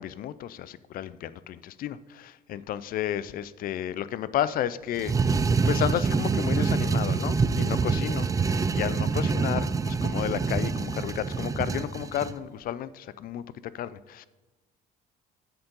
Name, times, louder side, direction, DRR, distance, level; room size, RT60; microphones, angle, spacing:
voice 1, 0.0-5.4 5.7-8.3 8.7-13.4 13.7-14.3, left 11 dB, 60° left, 17 dB, 0.4 m, -32 dB
sound 1, 5.0-12.4, right 4 dB, 20° right, 0.4 m, -26 dB
7.4 x 7.1 x 5.3 m, 1.2 s
cardioid pair, 110°, 17 cm